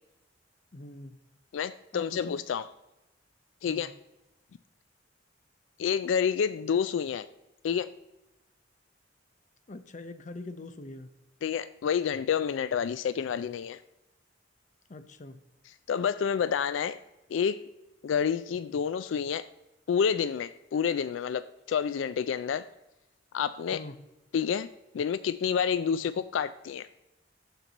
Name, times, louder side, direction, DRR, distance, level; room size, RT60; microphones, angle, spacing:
voice 1, 0.7-1.2 1.9-2.3 3.7-3.9 9.7-11.1 14.9-15.4 23.7-23.9, left 2 dB, 40° left, 11 dB, 0.7 m, -43 dB
voice 2, 1.5-2.7 3.6-3.9 5.8-7.3 7.6-7.9 11.4-13.8 15.9-17.0 17.3-17.6 18.0-19.5 19.9-22.7 23.3-23.8 24.3-24.7 24.9-26.9, left 7 dB, 80° left, 15 dB, 0.3 m, -29 dB
13.5 x 4.5 x 4.0 m, 0.95 s
head